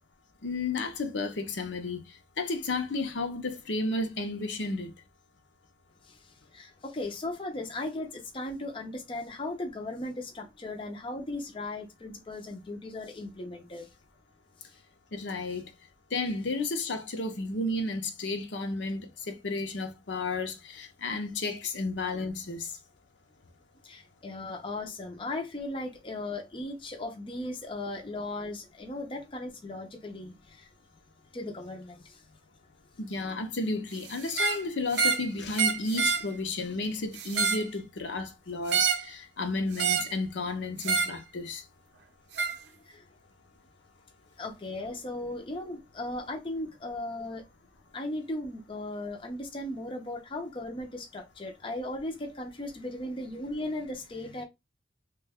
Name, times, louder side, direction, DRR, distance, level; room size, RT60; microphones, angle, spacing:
voice 1, 0.4-2.0 2.4-4.9 15.1-15.6 16.1-22.8 33.0-41.6, left 3 dB, 70° left, 0.7 m, -32 dB
voice 2, 6.0-13.9 14.6-14.8 23.8-30.7 31.3-32.2 42.8-43.1 44.4-47.4 47.9-54.4, left 2 dB, 30° left, 0.5 m, -37 dB
sound 1, 34.3-34.6 34.9-35.3 35.5-36.2 37.2-37.7 38.7-39.1 39.8-40.1 40.8-41.2 42.4-42.6, right 5 dB, 65° right, 0.5 m, -27 dB
3.2 x 2.2 x 3.4 m
head